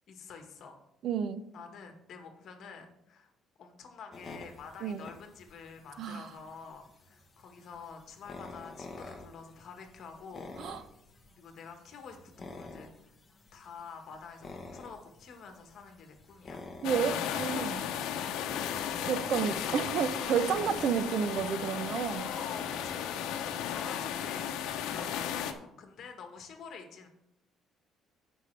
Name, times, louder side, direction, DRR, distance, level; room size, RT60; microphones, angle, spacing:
voice 1, 0.1-0.8 1.5-3.3 3.6-10.9 11.4-12.9 13.5-18.4 22.1-24.4 24.9-27.1, left 5 dB, 50° left, 4 dB, 1.4 m, -48 dB
voice 2, 1.0-1.4 4.8-5.0 6.0-6.3 10.6-10.8 16.8-17.8 19.1-22.3, right 7 dB, 50° right, 12 dB, 0.6 m, -31 dB
sound 1, 4.1-24.0, left 3 dB, 20° left, 1.0 m, -50 dB
sound 2, 16.8-25.5, left 9 dB, 90° left, 0.7 m, -35 dB
15.0 x 5.4 x 3.3 m, 0.81 s
cardioid pair, 155°, 0 cm